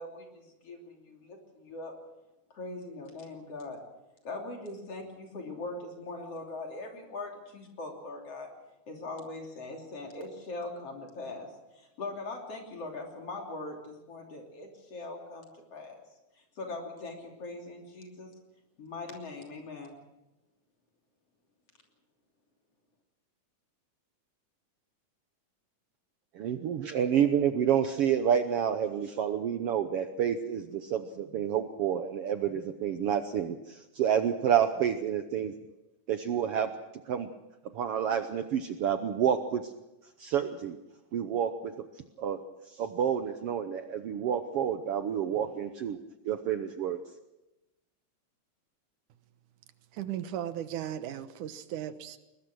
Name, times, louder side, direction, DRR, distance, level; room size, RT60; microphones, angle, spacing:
voice 1, 0.0-2.0 2.5-3.8 4.2-8.5 8.9-11.5 11.7-16.0 16.6-18.3 18.8-20.0, left 2 dB, 50° left, 1 dB, 4.1 m, -41 dB
voice 2, 26.3-35.6 36.1-36.7 37.1-37.3 37.7-39.7 40.2-40.8 41.1-41.7 42.2-42.4 42.7-46.0 46.2-47.0, right 9 dB, 70° right, 8 dB, 1.5 m, -29 dB
voice 3, 49.9-52.2, right 11 dB, 90° right, 11 dB, 2.6 m, -36 dB
21.5 x 21.0 x 6.2 m, 1.0 s
omnidirectional pair, 3.4 m